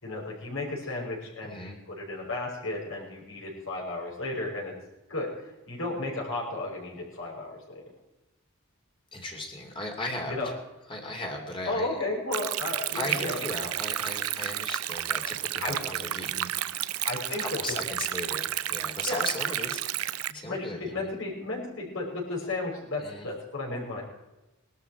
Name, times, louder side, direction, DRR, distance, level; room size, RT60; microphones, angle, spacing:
voice 1, 0.0-4.7 5.1-7.8 10.3-10.5 11.7-13.4 15.6-15.8 17.0-17.8 19.0-19.2 20.3-24.0, left 2 dB, 65° left, -2 dB, 5.8 m, -34 dB
voice 2, 1.4-1.8 9.1-10.4 10.9-11.9 12.9-16.8 17.4-21.1 23.0-23.3, left 1 dB, 25° left, 1 dB, 2.8 m, -37 dB
Stream, 12.3-20.3, right 12 dB, 85° right, 0.6 m, -31 dB
20.5 x 12.5 x 4.7 m, 1.0 s
head